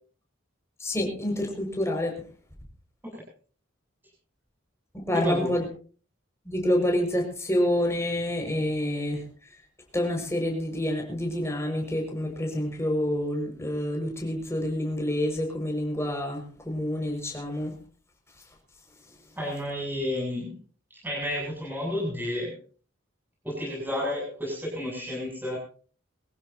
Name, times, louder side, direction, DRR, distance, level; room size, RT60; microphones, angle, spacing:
voice 1, 0.8-2.1 4.9-5.7 6.4-9.2 9.9-17.8, left 1 dB, 15° left, 1 dB, 5.6 m, -28 dB
voice 2, 5.1-5.5 19.4-20.6 21.0-22.6 23.4-25.6, left 1 dB, 10° right, -3 dB, 7.8 m, -31 dB
24.5 x 15.5 x 2.8 m, 0.40 s
head